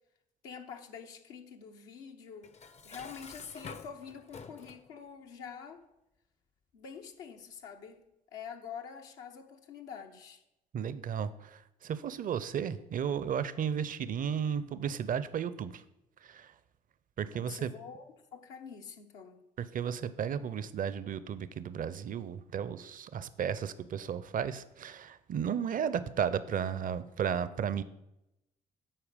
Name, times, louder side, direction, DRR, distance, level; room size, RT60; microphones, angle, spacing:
voice 1, 0.4-2.5 2.8-5.8 6.7-8.0 8.3-10.4 17.2-19.4, left 6 dB, 75° left, 2 dB, 1.0 m, -46 dB
Dishes pots and pans, 2.4-4.9, left 5 dB, 35° left, 0.6 m, -48 dB
voice 2, 10.7-15.8 16.2-16.5 17.2-17.7 19.7-27.8, right 8 dB, 45° right, 15 dB, 0.6 m, -34 dB
8.9 x 4.5 x 5.1 m, 0.88 s
hypercardioid pair, 50°, 19 cm